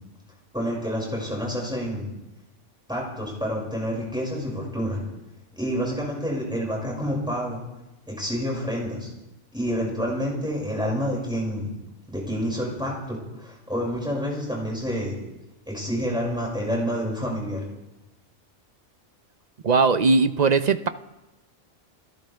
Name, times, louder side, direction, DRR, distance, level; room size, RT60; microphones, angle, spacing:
voice 1, 0.5-2.1 2.9-5.0 5.5-7.6 8.1-9.1 9.5-11.7 12.1-15.2 15.7-17.6, equal, 5° right, -3 dB, 5.6 m, -28 dB
voice 2, 19.6-20.9, right 4 dB, 45° right, 11 dB, 0.6 m, -19 dB
29.5 x 14.0 x 3.4 m, 1.0 s
omnidirectional pair, 1.3 m